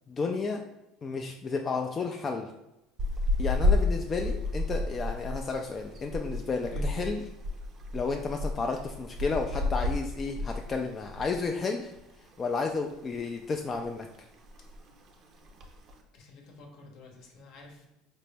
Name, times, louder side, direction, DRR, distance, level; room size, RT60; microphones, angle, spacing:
voice 1, 0.1-0.6 1.0-2.5 3.4-7.2 7.9-11.9 12.4-14.1, left 4 dB, 35° left, 3 dB, 0.3 m, -32 dB
sound 1, 3.0-11.5 11.8-12.0 12.4-13.2 13.5-13.9 14.2-14.3 14.4-14.9 15.4-15.9, left 2 dB, 45° right, 0.5 m, -31 dB
voice 2, 16.1-17.9, left 2 dB, 65° left, 2 dB, 0.8 m, -47 dB
4.3 x 2.0 x 3.3 m, 0.92 s
hypercardioid pair, 80°, 0 cm